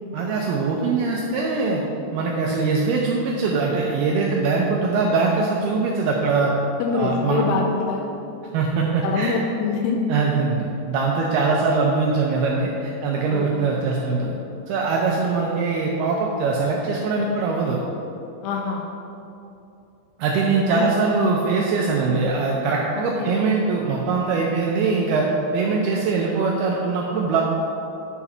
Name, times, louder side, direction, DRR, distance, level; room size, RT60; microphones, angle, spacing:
voice 1, 0.1-1.8 2.1-6.5 6.9-7.5 8.5-9.4 10.1-14.3 14.7-17.8 20.2-25.3 25.5-27.4, right 4 dB, 90° right, -2 dB, 2.3 m, -22 dB
voice 2, 6.8-8.1 9.0-10.0 13.3-13.8 18.4-18.9 20.7-20.9 22.9-23.3, left 5 dB, 80° left, 1 dB, 2.5 m, -25 dB
10.0 x 4.8 x 5.7 m, 2.8 s
omnidirectional pair, 5.2 m